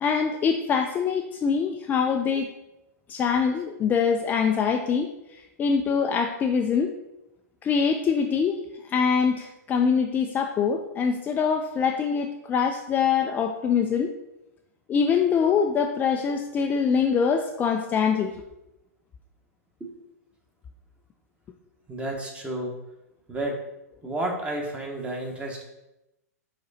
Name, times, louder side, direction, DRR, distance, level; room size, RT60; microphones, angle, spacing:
voice 1, 0.0-2.5 3.1-5.1 5.6-6.9 7.6-8.6 8.9-14.1 14.9-18.3, left 6 dB, 20° left, 3 dB, 0.4 m, -24 dB
voice 2, 21.9-22.7 23.3-23.6 24.0-25.6, right 1 dB, 15° right, 0 dB, 1.3 m, -31 dB
5.0 x 4.8 x 4.2 m, 0.93 s
hypercardioid pair, 125°, 9 cm